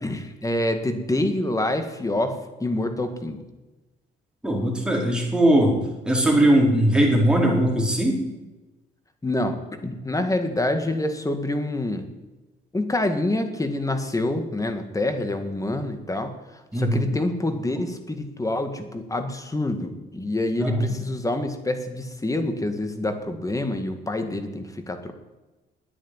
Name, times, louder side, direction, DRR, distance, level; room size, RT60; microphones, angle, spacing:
voice 1, 0.0-3.4 9.2-12.1 12.7-16.3 16.7-25.1, left 1 dB, 15° left, 7 dB, 1.9 m, -26 dB
voice 2, 4.4-5.8 6.1-8.2 16.7-17.1 20.6-20.8, right 1 dB, 5° right, -2 dB, 4.2 m, -20 dB
10.0 x 9.6 x 9.5 m, 1.1 s
cardioid pair, 90°, 20 cm